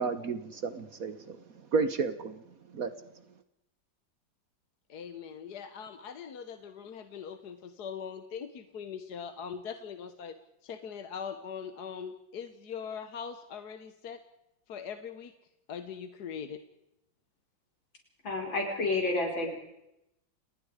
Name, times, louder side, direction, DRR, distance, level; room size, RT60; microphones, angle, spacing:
voice 1, 0.0-2.4 2.7-2.9, right 4 dB, 50° right, 11 dB, 1.4 m, -32 dB
voice 2, 4.9-10.4 10.6-14.2 14.7-15.3 15.7-16.6, left 7 dB, 60° left, 9 dB, 1.6 m, -41 dB
voice 3, 18.2-19.5, left 2 dB, 75° left, 1 dB, 5.8 m, -30 dB
29.5 x 19.5 x 5.0 m, 0.85 s
omnidirectional pair, 2.1 m